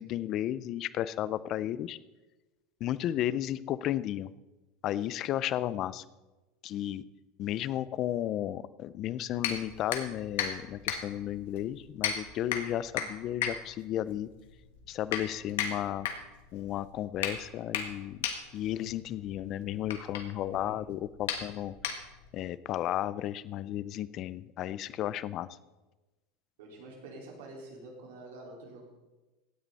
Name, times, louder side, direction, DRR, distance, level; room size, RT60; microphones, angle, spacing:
voice 1, 0.0-2.0 2.8-4.3 4.8-6.0 6.6-7.0 7.4-14.3 14.9-16.1 16.5-18.2 18.5-21.7 22.3-25.5, left 12 dB, 35° left, 17 dB, 0.4 m, -33 dB
sound 1, 9.4-22.4, left 8 dB, 90° left, 1.8 m, -37 dB
voice 2, 20.5-20.9 26.6-28.9, right 2 dB, 85° right, -1 dB, 4.5 m, -47 dB
16.5 x 9.5 x 4.1 m, 1.1 s
supercardioid pair, 160°, 0 cm